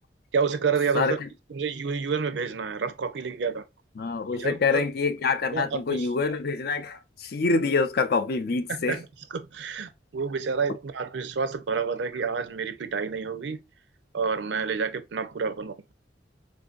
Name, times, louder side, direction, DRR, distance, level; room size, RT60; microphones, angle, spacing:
voice 1, 0.3-1.2 1.5-3.6 4.4-4.8 5.5-6.1 8.7-13.6 14.1-15.9, right 5 dB, 85° right, 0.5 m, -29 dB
voice 2, 0.9-1.3 4.0-9.0, left 4 dB, 60° left, 0.5 m, -26 dB
3.8 x 2.7 x 2.4 m
head